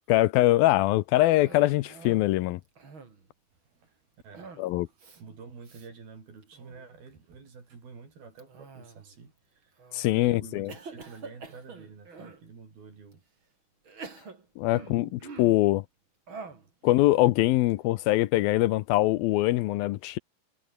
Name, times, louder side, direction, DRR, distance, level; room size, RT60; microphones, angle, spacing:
voice 1, 0.1-2.6 4.6-4.9 9.9-10.7 14.6-15.8 16.8-20.2, left 17 dB, 80° left, 2.5 m, -23 dB
Cough, 1.1-2.3 2.7-3.3 4.3-4.7 5.0-5.2 5.6-5.9 6.4-6.9 8.4-9.2 9.8-10.2 10.7-12.4 13.1-13.2 13.8-15.7 16.3-16.7, right 4 dB, 35° right, 4.1 m, -46 dB
voice 2, 3.7-4.5 4.9-9.8 10.1-13.2 14.8-15.2, right 5 dB, 75° right, 8.0 m, -49 dB
omnidirectional pair, 4.4 m